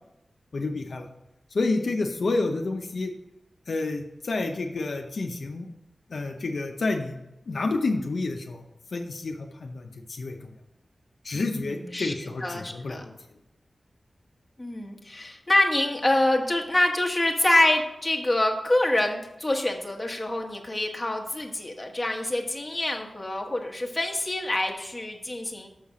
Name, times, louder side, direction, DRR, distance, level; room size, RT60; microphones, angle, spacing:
voice 1, 0.5-1.1 1.5-3.1 3.7-5.7 6.1-7.2 7.5-8.6 8.9-10.4 11.2-13.1, left 3 dB, 70° left, 3 dB, 0.6 m, -29 dB
voice 2, 11.3-12.1 12.4-13.1 14.6-25.7, left 1 dB, 20° left, 0 dB, 1.1 m, -26 dB
6.4 x 5.7 x 4.9 m, 0.92 s
wide cardioid pair, 105°, 0 cm